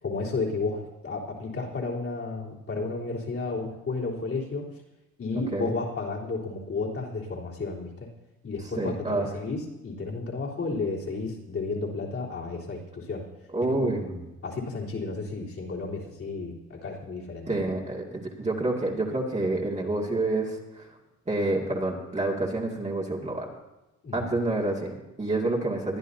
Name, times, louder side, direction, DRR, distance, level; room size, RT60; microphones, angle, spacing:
voice 1, 0.0-4.7 5.2-8.1 8.4-13.2 13.7-14.0 14.4-17.6 24.0-24.3, left 3 dB, 50° left, -5 dB, 3.7 m, -32 dB
voice 2, 5.3-5.7 8.8-9.3 13.5-14.3 17.5-20.9 21.3-23.5 24.1-26.0, right 2 dB, 20° right, -3 dB, 2.3 m, -28 dB
21.5 x 11.0 x 2.8 m, 0.98 s
cardioid pair, 90°, 30 cm